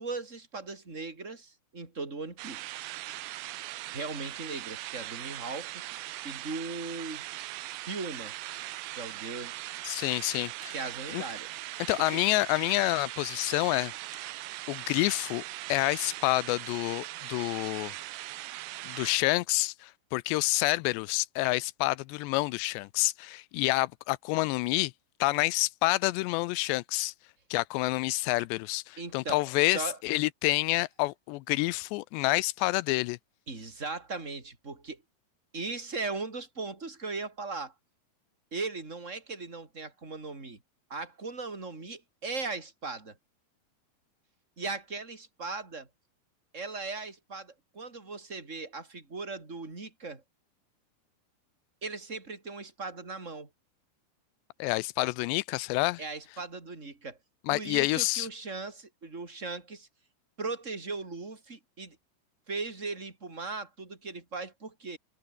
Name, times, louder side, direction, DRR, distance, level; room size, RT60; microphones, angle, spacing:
voice 1, 0.0-2.7 3.9-5.8 6.2-7.2 7.8-8.3 8.9-9.5 10.7-11.5 12.1-12.2 29.0-30.0 33.5-35.0 35.5-37.7 38.5-40.6 40.9-43.2 44.6-45.9 46.5-50.2 51.8-53.5 56.0-57.2 57.5-59.9 60.4-62.0 62.5-65.0, right 3 dB, 15° right, 4.2 m, -38 dB
sound 1, 2.4-19.2, right 16 dB, 80° right, 3.1 m, -40 dB
voice 2, 9.8-10.7 11.1-11.2 11.9-13.9 14.7-15.4 15.7-17.9 18.8-24.9 25.2-27.1 27.5-33.2 54.6-56.0 57.5-58.3, left 21 dB, 85° left, 2.8 m, -28 dB
omnidirectional pair, 5.0 m